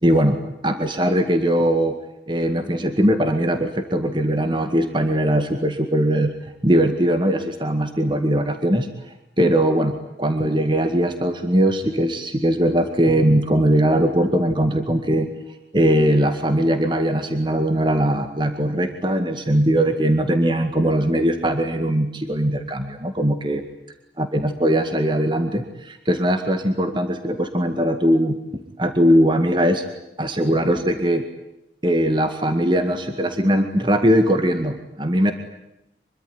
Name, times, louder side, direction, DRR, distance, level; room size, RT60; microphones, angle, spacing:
voice 1, 0.0-0.4 0.6-2.0 2.3-6.3 6.6-15.3 15.7-23.6 24.2-29.8 30.2-31.2 31.8-35.3, right 1 dB, 25° right, 7 dB, 2.0 m, -20 dB
25.5 x 23.5 x 9.7 m, 0.87 s
head